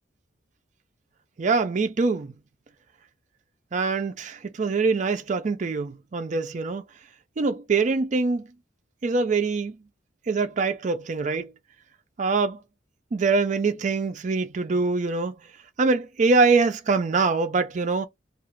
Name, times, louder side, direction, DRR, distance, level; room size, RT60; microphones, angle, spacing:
voice 1, 1.4-2.3 3.7-6.8 7.4-8.5 9.0-9.8 10.3-11.5 12.2-12.6 13.1-15.3 15.8-18.1, right 4 dB, 40° right, 0.4 m, -24 dB
2.4 x 2.3 x 3.0 m
head